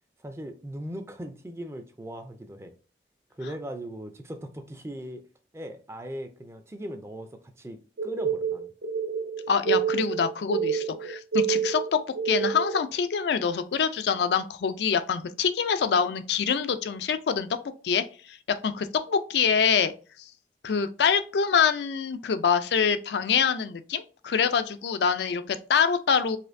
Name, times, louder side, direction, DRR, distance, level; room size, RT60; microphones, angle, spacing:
voice 1, 0.2-2.7 3.3-5.2 5.5-8.7, equal, 15° right, 0.4 m, -39 dB
sound 1, 8.0-12.8, right 7 dB, 70° right, 0.5 m, -28 dB
voice 2, 9.5-17.5 17.8-18.4 18.6-19.9 20.2-20.3 20.6-26.4, left 6 dB, 80° left, 0.4 m, -25 dB
4.2 x 2.5 x 2.5 m
head